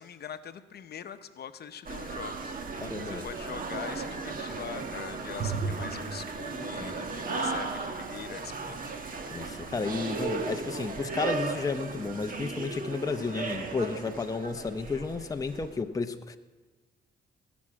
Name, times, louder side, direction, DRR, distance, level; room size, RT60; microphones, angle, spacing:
voice 1, 0.0-2.5 3.0-8.9, left 8 dB, 55° left, 10 dB, 0.8 m, -43 dB
sound 1, 1.9-15.7, right 4 dB, 45° right, 1.4 m, -35 dB
voice 2, 2.8-3.3 6.8-7.2 9.3-16.4, left 4 dB, 15° left, 7 dB, 0.6 m, -32 dB
18.5 x 6.2 x 8.5 m, 1.3 s
cardioid pair, 90°, 20 cm